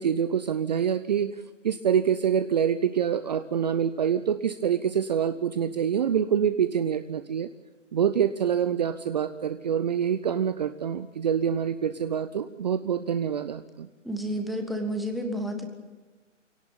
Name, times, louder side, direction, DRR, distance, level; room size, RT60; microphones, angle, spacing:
voice 1, 0.0-1.4 1.6-7.5 7.9-13.9, right 8 dB, 35° right, 12 dB, 0.7 m, -26 dB
voice 2, 14.0-15.7, equal, ahead, 3 dB, 1.6 m, -30 dB
24.0 x 18.0 x 9.0 m, 1.2 s
figure-of-eight pair, 145°, 37 cm